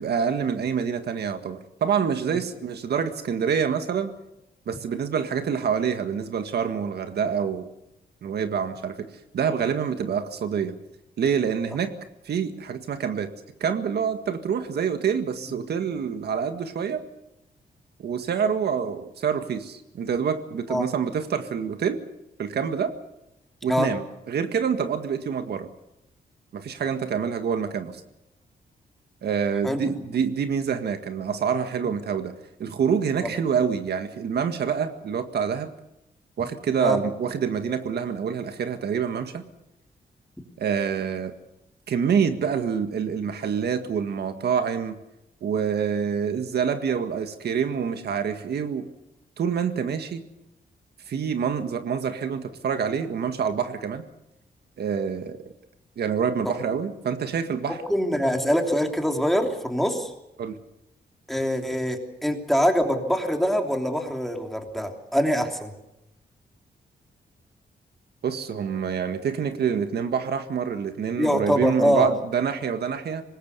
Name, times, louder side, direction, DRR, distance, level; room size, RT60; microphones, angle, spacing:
voice 1, 0.0-4.2 4.7-7.7 8.2-10.7 11.2-12.0 12.3-13.3 13.6-17.0 18.0-22.0 22.4-22.9 23.6-25.7 26.5-28.0 29.2-32.3 32.6-35.7 36.4-39.5 40.6-41.3 41.9-45.0 45.4-48.9 49.4-50.2 51.1-54.0 54.8-55.4 56.0-57.8 60.4-60.6 68.2-73.2, right 7 dB, 70° right, 8 dB, 1.8 m, -26 dB
voice 2, 57.9-60.1 61.3-65.7 71.2-72.1, equal, ahead, 3 dB, 3.1 m, -24 dB
25.5 x 20.0 x 6.9 m, 0.90 s
wide cardioid pair, 150°, 17 cm